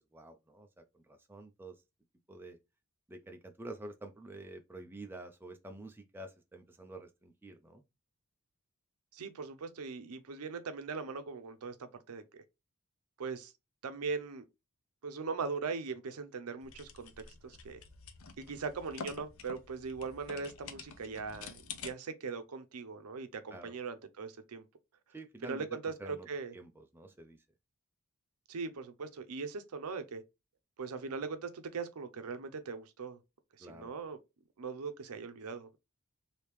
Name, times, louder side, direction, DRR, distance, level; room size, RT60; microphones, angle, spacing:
voice 1, 0.1-1.7 2.3-2.6 3.1-7.8 23.5-23.7 25.1-25.7 26.0-26.3 26.5-27.4 33.6-33.9, right 2 dB, 10° right, 0.4 m, -48 dB
voice 2, 9.1-12.4 13.2-13.5 13.8-14.4 15.0-17.8 18.4-24.6 25.4-26.5 28.5-30.2 30.8-33.2 33.6-34.2 34.6-35.8, right 4 dB, 85° right, 0.6 m, -40 dB
sound 1, 16.6-21.9, left 5 dB, 65° left, 0.5 m, -48 dB
3.4 x 2.7 x 3.0 m
head